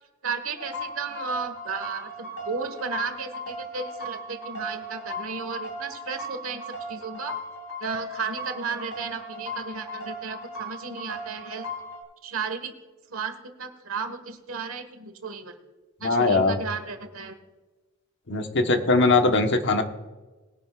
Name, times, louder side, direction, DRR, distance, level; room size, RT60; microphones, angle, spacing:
voice 1, 0.2-7.3 7.8-11.6 12.2-12.7 13.1-15.5 16.0-17.3, right 5 dB, 70° right, 7 dB, 1.5 m, -34 dB
sound 1, 0.6-12.0, equal, 75° left, 3.3 m, -37 dB
voice 2, 16.0-16.6 18.3-19.8, left 3 dB, 60° left, 5 dB, 1.2 m, -21 dB
20.5 x 10.5 x 2.4 m, 1.2 s
head